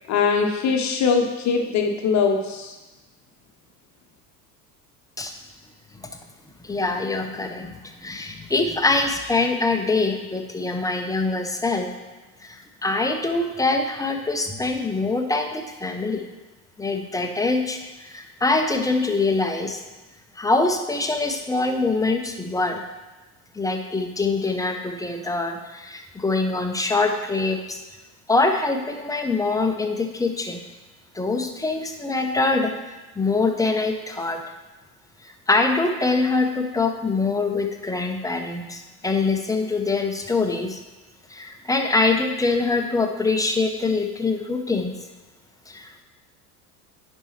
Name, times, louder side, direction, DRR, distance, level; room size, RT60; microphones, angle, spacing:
voice 1, 0.1-2.7, left 5 dB, 35° left, 4 dB, 1.0 m, -22 dB
voice 2, 6.6-11.9 12.4-16.2 16.8-19.8 20.4-22.8 23.5-27.8 28.3-30.6 31.1-32.7 33.2-34.4 35.2-40.8 41.3-44.9 45.7-46.0, left 3 dB, 5° left, 4 dB, 0.7 m, -24 dB
10.0 x 5.3 x 3.2 m, 1.1 s
hypercardioid pair, 75°, 48 cm